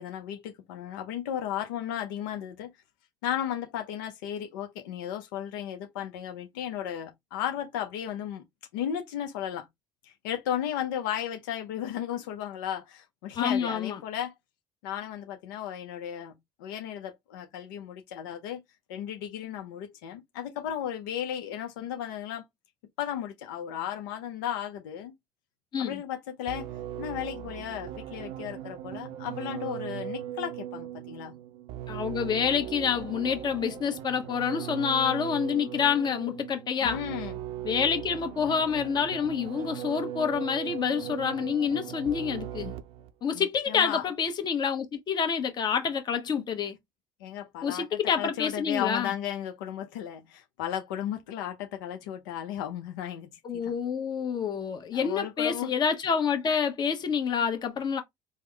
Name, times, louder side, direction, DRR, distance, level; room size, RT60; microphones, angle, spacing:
voice 1, 0.0-2.7 3.2-8.4 8.7-9.7 10.0-14.3 14.8-18.6 18.9-22.4 23.0-25.1 25.8-26.7 27.0-31.4 36.8-37.4 43.3-44.0 47.2-53.7 54.9-55.7, left 10 dB, 90° left, 0.5 m, -35 dB
voice 2, 13.3-14.0 25.7-26.0 31.9-37.0 37.6-42.7 43.2-46.8 47.6-49.1 53.4-58.0, left 7 dB, 45° left, 1.0 m, -28 dB
sound 1, 26.5-43.1, right 11 dB, 65° right, 0.4 m, -39 dB
3.4 x 2.0 x 3.3 m
supercardioid pair, 80°, 10 cm